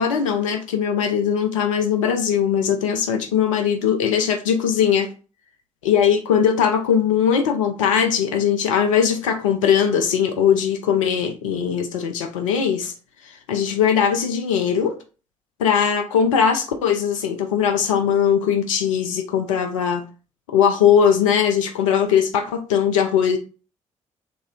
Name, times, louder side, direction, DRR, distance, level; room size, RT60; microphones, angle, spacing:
voice 1, 0.0-5.1 5.8-12.9 13.3-15.0 15.6-20.0 20.5-23.4, left 7 dB, 80° left, 0.5 m, -20 dB
3.4 x 3.2 x 4.2 m
figure-of-eight pair, 40°, 16 cm